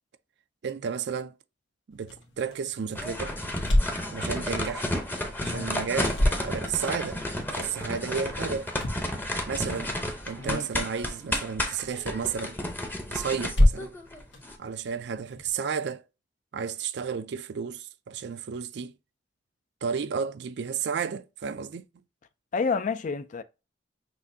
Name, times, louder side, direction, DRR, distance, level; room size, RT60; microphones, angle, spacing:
voice 1, 0.6-1.4 1.9-3.4 4.1-4.9 5.4-7.2 7.5-8.7 9.5-9.9 10.3-12.6 13.1-13.9 14.6-16.0 16.5-18.9 19.8-21.8, right 6 dB, 65° right, 0.4 m, -32 dB
sound 1, 1.9-15.5, left 1 dB, 80° left, 1.2 m, -31 dB
sound 2, 3.0-14.6, left 1 dB, 10° left, 0.8 m, -32 dB
voice 2, 5.4-5.7 10.4-10.7 22.5-23.4, left 5 dB, 45° left, 0.4 m, -29 dB
6.1 x 2.6 x 2.6 m
head